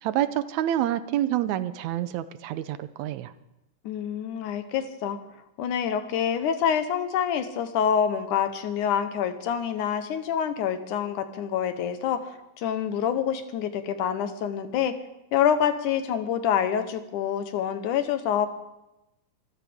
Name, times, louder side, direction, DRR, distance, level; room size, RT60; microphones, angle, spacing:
voice 1, 0.0-3.3, right 12 dB, 75° right, 13 dB, 2.0 m, -27 dB
voice 2, 3.8-5.2 5.6-14.9 15.3-18.5, left 8 dB, 90° left, 9 dB, 2.6 m, -26 dB
25.5 x 14.0 x 3.6 m, 0.92 s
omnidirectional pair, 3.5 m